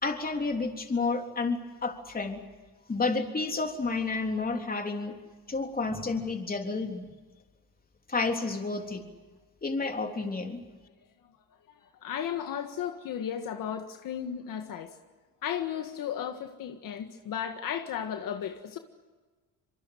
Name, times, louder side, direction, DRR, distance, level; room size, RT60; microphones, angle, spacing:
voice 1, 0.0-2.4 2.9-5.1 5.5-7.1 8.1-9.0 9.6-10.6, left 3 dB, 25° left, 3 dB, 3.6 m, -30 dB
voice 2, 12.0-15.0 15.4-18.8, left 9 dB, 65° left, 6 dB, 1.8 m, -34 dB
26.0 x 23.5 x 7.9 m, 1.3 s
cardioid pair, 95°, 35 cm